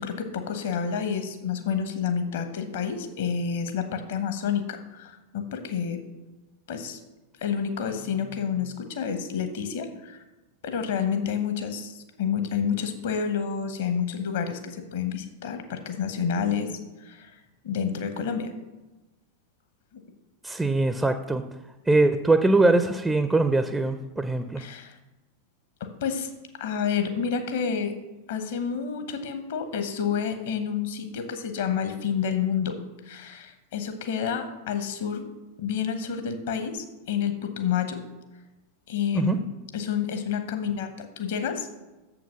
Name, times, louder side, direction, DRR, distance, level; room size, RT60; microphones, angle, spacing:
voice 1, 0.0-6.0 6.7-7.0 7.4-10.2 10.6-16.7 17.0-18.5 24.6-25.0 25.8-26.3 26.6-28.0 28.3-35.3 35.6-38.0 38.9-39.4 39.7-41.7, left 7 dB, 55° left, 8 dB, 1.0 m, -29 dB
voice 2, 20.4-21.5 21.9-24.6 39.1-39.4, right 2 dB, 10° right, 9 dB, 0.4 m, -22 dB
7.1 x 5.9 x 5.8 m, 1.1 s
figure-of-eight pair, 90°, 0 cm